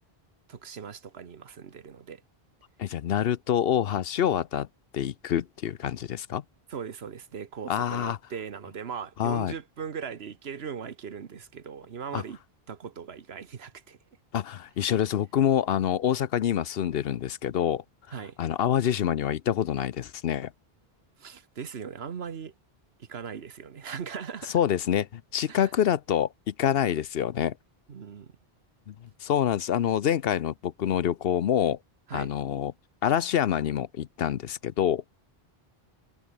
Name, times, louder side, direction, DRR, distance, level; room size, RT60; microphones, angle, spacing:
voice 1, 0.5-2.2 6.7-12.4 12.7-14.0 18.1-18.4 21.2-22.5 23.0-24.6 25.5-25.7 27.9-28.3 32.1-32.3, right 7 dB, 85° right, 1.4 m, -39 dB
voice 2, 2.8-4.7 4.9-6.4 7.7-8.2 9.2-9.5 12.1-12.2 14.3-17.8 18.4-20.5 24.5-27.5 28.9-29.0 29.2-31.8 32.1-32.7 33.0-35.0, left 10 dB, 70° left, 0.9 m, -26 dB
omnidirectional pair, 1.0 m